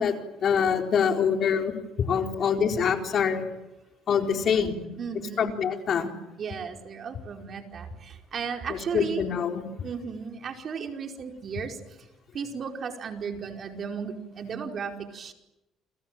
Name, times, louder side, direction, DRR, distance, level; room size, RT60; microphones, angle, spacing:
voice 1, 0.0-3.4 4.1-4.9 5.4-6.1 8.7-9.6, left 7 dB, 55° left, 4 dB, 4.3 m, -25 dB
voice 2, 5.0-5.6 6.4-9.2 9.8-11.8 12.3-15.3, right 6 dB, 50° right, 3 dB, 4.7 m, -35 dB
29.0 x 26.5 x 7.6 m, 0.94 s
supercardioid pair, 85°, 0 cm